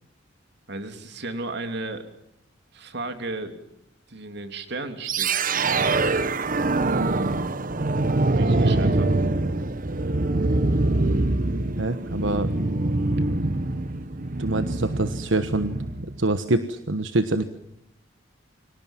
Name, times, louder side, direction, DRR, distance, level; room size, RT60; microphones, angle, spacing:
voice 1, 0.7-2.1 2.7-3.6 4.1-5.4 8.3-9.2, right 2 dB, 60° right, 7 dB, 3.3 m, -34 dB
sound 1, 5.0-16.2, right 2 dB, 45° right, 1.2 m, -24 dB
voice 2, 11.8-12.5 13.9-14.0 14.4-15.8 16.2-17.4, right 2 dB, 80° right, 10 dB, 1.3 m, -25 dB
29.5 x 25.0 x 7.5 m, 0.78 s
head